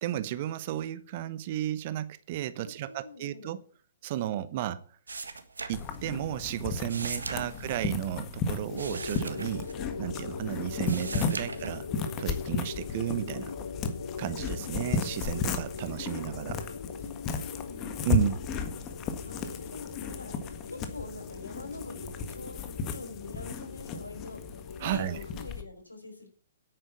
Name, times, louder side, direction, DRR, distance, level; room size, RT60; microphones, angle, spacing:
voice 1, 0.0-3.6 4.0-4.8 5.7-9.7 10.0-11.9 12.2-13.5 14.2-16.6 18.0-18.4 24.8-25.2, right 12 dB, 40° right, 0.9 m, -33 dB
voice 2, 2.6-3.5 7.3-7.7 11.4-11.7 17.6-18.0 19.2-24.4 24.8-26.3, left 2 dB, 85° left, 4.8 m, -45 dB
sound 1, 5.1-6.3 6.5-10.3 10.6-12.1 12.6-13.2, right 4 dB, 70° right, 1.7 m, -40 dB
sound 2, 5.7-25.6, left 5 dB, 25° left, 1.6 m, -35 dB
sound 3, 8.7-25.5, left 5 dB, 70° left, 0.7 m, -41 dB
10.5 x 9.0 x 7.2 m
figure-of-eight pair, 120°, 0 cm